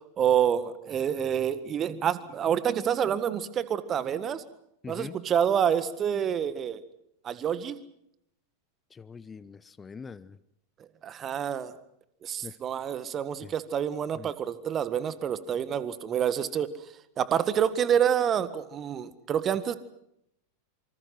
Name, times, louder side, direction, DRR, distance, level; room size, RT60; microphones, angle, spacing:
voice 1, 0.0-4.4 4.9-6.8 7.2-7.8 11.0-11.8 12.2-16.7 17.2-19.8, right 9 dB, 25° right, 15 dB, 1.8 m, -27 dB
voice 2, 4.8-5.2 8.9-10.4 12.4-12.5 13.4-13.5 14.1-14.3, left 5 dB, 15° left, 17 dB, 0.9 m, -43 dB
26.5 x 25.5 x 5.9 m, 0.77 s
figure-of-eight pair, 90°, 0 cm